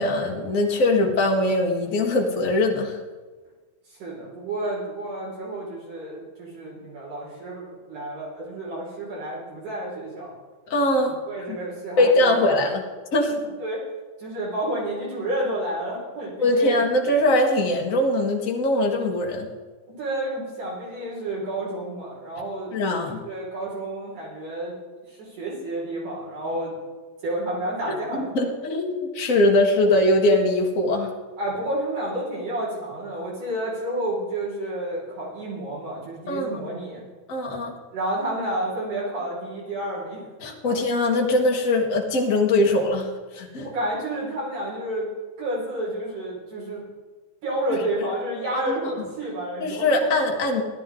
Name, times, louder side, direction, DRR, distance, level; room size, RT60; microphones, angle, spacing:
voice 1, 0.0-3.0 10.7-11.2 11.5-11.6 12.0-12.8 13.1-13.3 16.4-19.5 22.7-23.2 28.1-31.1 36.3-36.6 37.3-37.7 40.4-43.7 48.5-48.9 49.6-50.6, left 1 dB, 35° left, 0 dB, 1.3 m, -21 dB
voice 2, 3.9-10.3 11.1-12.7 13.6-13.9 14.2-16.8 20.0-22.7 23.2-24.8 25.1-26.7 27.2-28.3 31.4-37.0 37.9-40.2 40.6-40.8 43.6-45.1 45.4-46.8 47.4-49.9, right 1 dB, 70° right, -6 dB, 6.5 m, -30 dB
17.0 x 13.0 x 3.8 m, 1.3 s
omnidirectional pair, 3.6 m